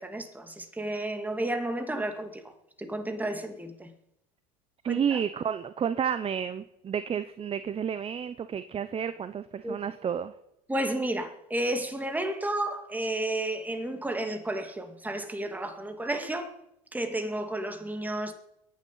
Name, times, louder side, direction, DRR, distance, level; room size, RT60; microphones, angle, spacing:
voice 1, 0.0-2.4 2.8-3.9 4.9-5.2 9.6-9.8 10.7-16.5 16.9-18.3, right 1 dB, 10° right, 2.4 m, -32 dB
voice 2, 4.8-10.3, right 8 dB, 30° right, 0.9 m, -30 dB
22.0 x 9.4 x 5.7 m
hypercardioid pair, 80°, 20 cm